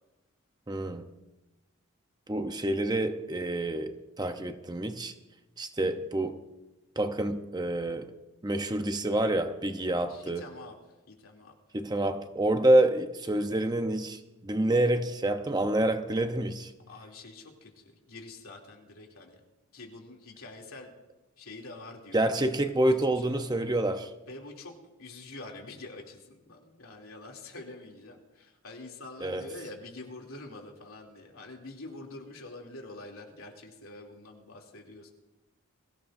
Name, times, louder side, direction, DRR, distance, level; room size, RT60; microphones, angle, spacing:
voice 1, 0.7-1.1 2.3-5.1 5.6-6.4 7.0-8.1 8.4-10.5 11.7-16.7 22.1-24.1 29.2-29.4, right 1 dB, 20° right, 0.8 m, -27 dB
voice 2, 10.1-10.7 11.1-11.5 16.9-19.4 19.7-20.9 21.4-22.6 22.9-23.4 24.3-35.1, left 2 dB, 85° left, 2.9 m, -46 dB
23.0 x 16.5 x 2.7 m
head